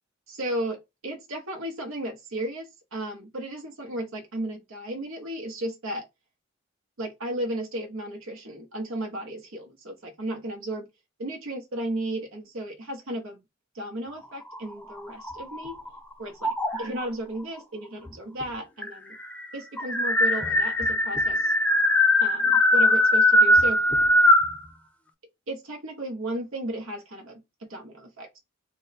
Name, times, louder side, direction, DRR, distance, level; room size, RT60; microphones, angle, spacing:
voice 1, 0.3-6.1 7.0-10.9 11.2-13.4 13.7-15.8 16.2-19.2 19.5-21.5 22.2-23.8 25.5-28.4, right 1 dB, 85° right, 0.9 m, -34 dB
sound 1, 14.4-15.9 16.4-17.1 18.1-18.2 18.4-18.5 18.8-24.6, left 1 dB, 5° left, 0.4 m, -21 dB
3.8 x 2.1 x 4.0 m
head